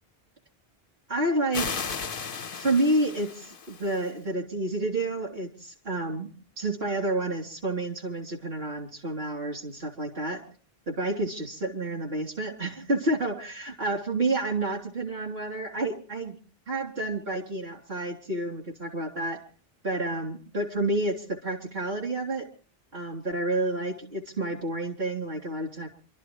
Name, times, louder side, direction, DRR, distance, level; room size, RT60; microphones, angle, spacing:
voice 1, 1.1-1.8 2.5-10.4 10.9-16.4 16.7-19.4 19.8-22.5 22.9-25.9, right 2 dB, 70° right, 0 dB, 3.4 m, -29 dB
sound 1, 1.5-4.1, left 5 dB, 60° left, 1.1 m, -35 dB
27.5 x 13.0 x 3.1 m, 0.39 s
omnidirectional pair, 1.0 m